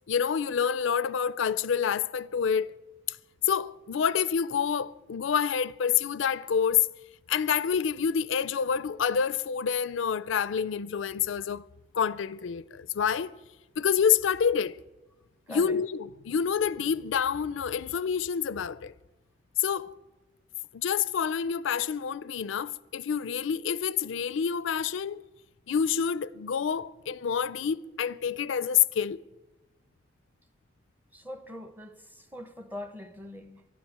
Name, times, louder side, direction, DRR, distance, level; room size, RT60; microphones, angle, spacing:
voice 1, 0.1-2.8 3.5-6.9 7.3-11.6 11.9-13.3 13.8-14.8 15.5-18.9 19.6-19.9 20.7-25.2 25.7-29.2, left 7 dB, 85° left, 0.4 m, -27 dB
voice 2, 15.5-15.8 31.1-33.7, left 1 dB, 10° right, 0.8 m, -42 dB
12.0 x 10.0 x 9.2 m
head